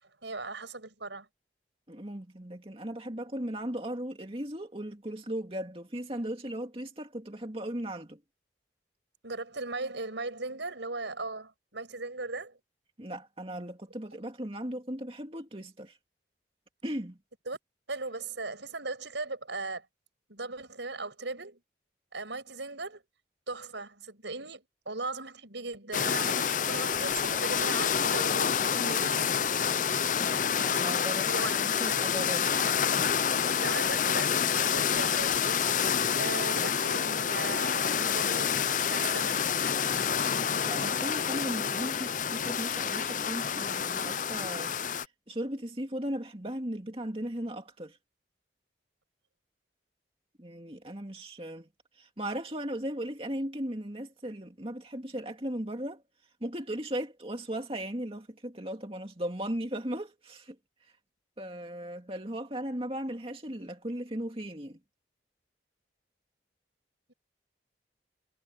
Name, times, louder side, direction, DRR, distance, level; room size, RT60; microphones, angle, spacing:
voice 1, 0.0-1.3 9.2-12.6 17.5-17.6 17.9-19.9 20.3-21.6 22.1-23.0 23.5-29.4 31.3-31.8 32.1-32.2 33.6-35.8 36.1-39.4, right 3 dB, 85° right, 6.3 m, -38 dB
voice 2, 1.9-8.2 13.0-16.0 16.8-17.2 30.2-32.5 40.7-48.0 50.4-51.7 52.0-56.0 56.4-60.6 60.8-60.9 61.4-64.8, right 1 dB, 30° right, 2.4 m, -37 dB
sound 1, 25.9-45.1, left 7 dB, 45° left, 0.5 m, -28 dB
head